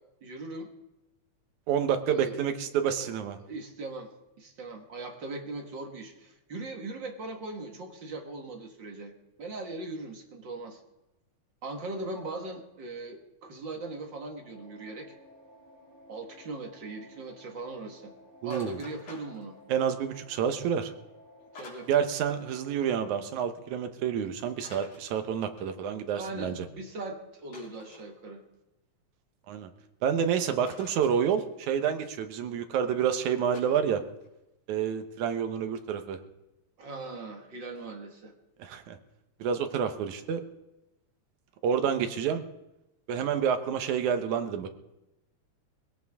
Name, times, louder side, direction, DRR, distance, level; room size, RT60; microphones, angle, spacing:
voice 1, 0.2-0.7 2.1-2.4 3.0-3.1 3.4-4.1 4.4-9.1 9.4-10.8 11.6-15.1 16.1-18.1 18.4-19.6 21.5-21.9 26.1-28.4 36.8-38.3, right 2 dB, 45° right, 3 dB, 2.0 m, -39 dB
voice 2, 1.7-3.4 18.4-18.8 19.7-20.9 21.9-26.6 29.5-29.7 30.0-34.0 34.7-36.2 38.6-39.0 39.4-40.4 41.6-42.4 43.1-44.7, right 8 dB, 85° right, 8 dB, 2.5 m, -28 dB
sound 1, 14.4-22.8, equal, 10° left, 6.0 m, -55 dB
sound 2, 18.5-19.8 21.6-22.4 22.7-22.8 24.5-25.9 27.5-28.1 30.7-31.9 33.5-34.3, left 3 dB, 60° left, 4.6 m, -50 dB
21.5 x 17.0 x 3.6 m, 0.96 s
omnidirectional pair, 3.3 m